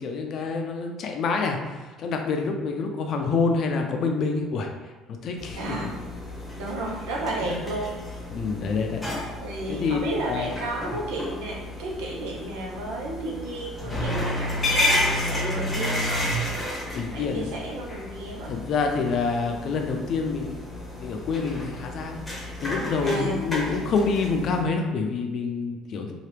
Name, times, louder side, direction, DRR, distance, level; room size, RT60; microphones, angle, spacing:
voice 1, 0.0-4.7 5.2-5.9 7.4-7.6 8.3-9.0 9.7-10.0 10.3-10.5 16.9-17.4 18.5-20.6 21.0-22.2 22.6-26.1, left 4 dB, 55° left, 3 dB, 0.5 m, -27 dB
sound 1, 5.4-24.6, left 1 dB, 10° left, 0.9 m, -31 dB
voice 2, 5.6-6.0 6.6-7.9 9.4-16.3 17.1-18.5 23.0-23.4, right 2 dB, 90° right, -2 dB, 0.7 m, -33 dB
2.9 x 2.3 x 3.3 m, 1.2 s
cardioid pair, 105°, 0 cm